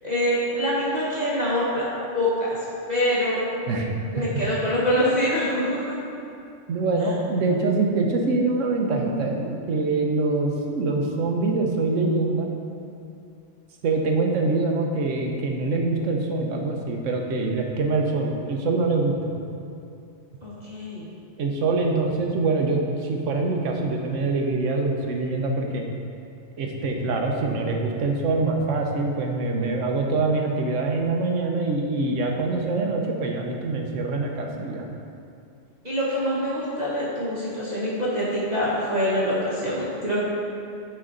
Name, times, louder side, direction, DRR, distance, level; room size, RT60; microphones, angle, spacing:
voice 1, 0.0-1.9 2.1-2.6 2.9-3.4 4.1-6.0 20.4-21.1 35.8-40.2, equal, 35° right, -8 dB, 1.2 m, -25 dB
voice 2, 3.7-4.3 6.7-12.5 13.8-19.1 21.4-25.9 26.6-34.9, right 3 dB, 75° right, 1 dB, 1.2 m, -24 dB
9.6 x 4.4 x 3.8 m, 2.5 s
omnidirectional pair, 1.3 m